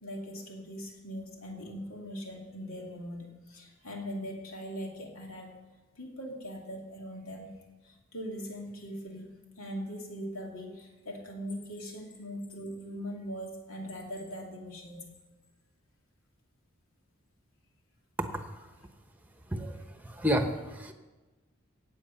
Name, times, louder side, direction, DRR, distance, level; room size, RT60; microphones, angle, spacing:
voice 1, 0.0-5.7 6.0-15.1, equal, 90° left, 0 dB, 2.6 m, -41 dB
voice 2, 19.5-20.9, equal, 10° right, 6 dB, 1.1 m, -31 dB
17.5 x 8.4 x 5.7 m, 1.2 s
head